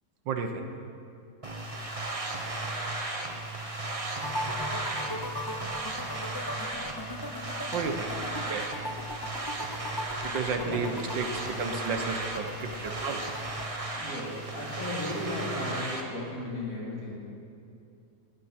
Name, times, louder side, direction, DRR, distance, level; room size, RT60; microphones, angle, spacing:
voice 1, 0.3-0.6 7.7-8.1 8.5-8.7 10.2-11.3 11.6-13.2, right 5 dB, 90° right, 5 dB, 1.8 m, -32 dB
sound 1, 1.4-16.0, right 2 dB, 25° right, 1.1 m, -35 dB
sound 2, 4.2-13.7, left 1 dB, 20° left, 0.6 m, -39 dB
voice 2, 13.9-17.1, left 1 dB, 55° left, -7 dB, 4.4 m, -35 dB
19.0 x 14.0 x 4.4 m, 2.6 s
omnidirectional pair, 1.9 m